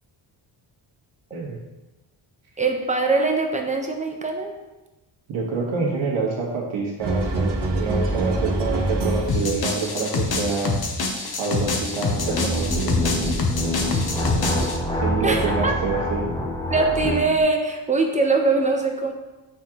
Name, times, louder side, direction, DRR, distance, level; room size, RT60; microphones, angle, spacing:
voice 1, 2.6-4.5 15.2-15.7 16.7-19.1, right 3 dB, 15° right, 2 dB, 1.0 m, -22 dB
voice 2, 5.3-10.8 11.4-13.0 14.3-14.5 15.0-16.3, right 4 dB, 75° right, -2 dB, 1.7 m, -27 dB
sound 1, 7.0-9.7, right 2 dB, 55° right, 1.2 m, -24 dB
sound 2, 9.3-14.8, left 3 dB, 50° left, 1.1 m, -26 dB
sound 3, 12.1-17.3, equal, 10° left, 1.0 m, -26 dB
9.4 x 3.8 x 3.0 m, 1.1 s
cardioid pair, 80°, 47 cm